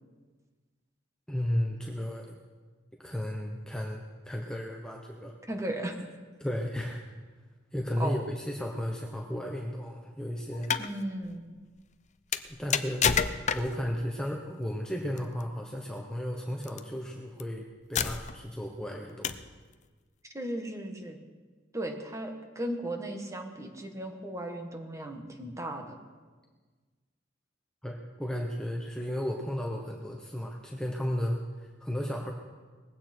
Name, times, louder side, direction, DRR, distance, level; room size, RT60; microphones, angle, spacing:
voice 1, 1.3-2.3 3.0-5.3 6.4-7.0 7.7-10.7 12.4-13.1 13.5-19.3 27.8-32.3, equal, 5° left, 0 dB, 1.1 m, -34 dB
voice 2, 5.5-5.9 8.0-8.2 10.8-11.4 20.2-21.2 21.7-26.0, right 1 dB, 15° right, 4 dB, 1.7 m, -36 dB
sound 1, 10.5-10.9 12.3-13.9 15.2-15.4 16.6-16.8 17.4-17.5 17.9-18.5 19.2-19.5, left 7 dB, 40° left, 0.6 m, -29 dB
20.0 x 16.0 x 4.6 m, 1.4 s
head